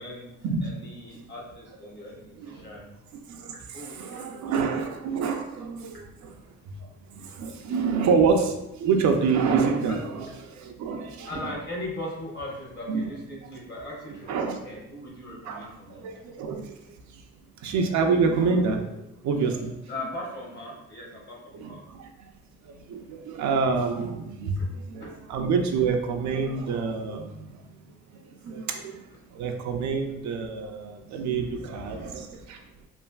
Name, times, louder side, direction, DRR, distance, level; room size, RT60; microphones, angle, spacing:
voice 1, 0.0-0.3 0.6-2.9 3.7-4.6 5.2-5.3 9.9-10.0 11.3-16.2 17.6-17.8 19.9-21.8 24.5-24.7 25.0-25.1 31.3-32.4, left 1 dB, 35° left, -3 dB, 1.2 m, -39 dB
voice 2, 3.3-6.3 6.7-6.8 7.1-11.3 12.9-13.0 14.3-14.6 15.5-16.8 17.6-19.7 21.5-22.3 22.6-25.0 25.3-27.6 28.1-29.0 29.3-32.6, right 5 dB, 70° right, 4 dB, 0.5 m, -27 dB
3.2 x 2.5 x 2.3 m, 0.88 s
cardioid pair, 90°, 30 cm